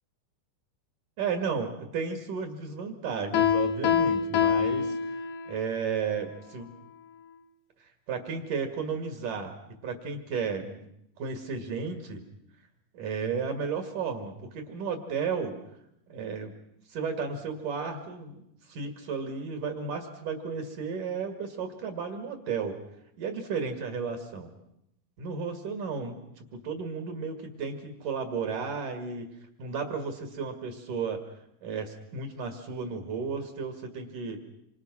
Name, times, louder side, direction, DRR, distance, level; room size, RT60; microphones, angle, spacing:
voice 1, 1.2-6.7 7.8-10.9 11.2-12.2 12.9-15.6 16.1-16.5 16.9-22.8 23.2-24.5 25.2-29.3 29.6-31.2 31.6-34.5, right 5 dB, 55° right, 6 dB, 3.3 m, -33 dB
Piano, 3.3-5.6, left 7 dB, 65° left, 3.3 m, -25 dB
27.5 x 27.0 x 6.2 m, 0.77 s
omnidirectional pair, 5.0 m